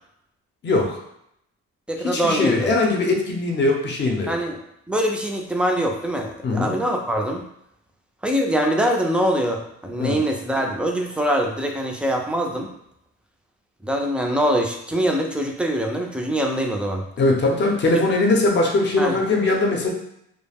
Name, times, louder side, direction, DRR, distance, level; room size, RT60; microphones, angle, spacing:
voice 1, 0.6-1.0 2.0-4.3 6.4-6.7 10.0-10.2 17.2-19.9, left 2 dB, 35° left, 1 dB, 0.6 m, -20 dB
voice 2, 1.9-2.8 4.3-4.6 4.9-7.4 8.2-12.7 13.8-17.0 19.0-19.2, equal, 5° right, 2 dB, 0.4 m, -23 dB
2.3 x 2.1 x 3.4 m, 0.76 s
cardioid pair, 90°, 30 cm